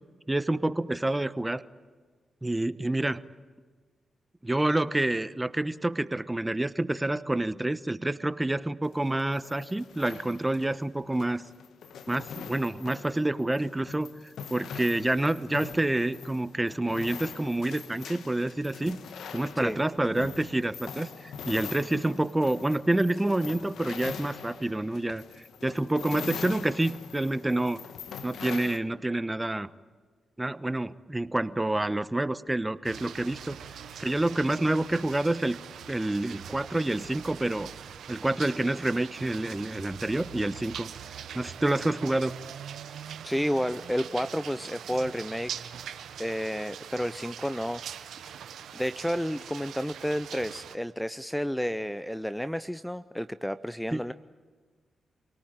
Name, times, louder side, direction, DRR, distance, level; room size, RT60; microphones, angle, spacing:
voice 1, 0.3-1.6 2.4-3.2 4.4-11.4 12.1-14.1 14.5-19.0 19.3-25.2 25.6-27.8 28.2-29.7 30.4-33.6 34.0-35.6 35.9-37.7 38.1-40.9 41.3-42.3 53.9-54.0, right 1 dB, 20° right, 14 dB, 1.1 m, -28 dB
sound 1, 8.8-28.8, left 7 dB, 75° left, 1.2 m, -43 dB
sound 2, 32.8-50.8, right 8 dB, 80° right, 1.0 m, -43 dB
voice 2, 43.2-45.5 46.2-47.8 48.7-54.1, equal, 5° left, 13 dB, 0.7 m, -31 dB
27.5 x 18.5 x 9.1 m, 1.5 s
supercardioid pair, 40°, 0 cm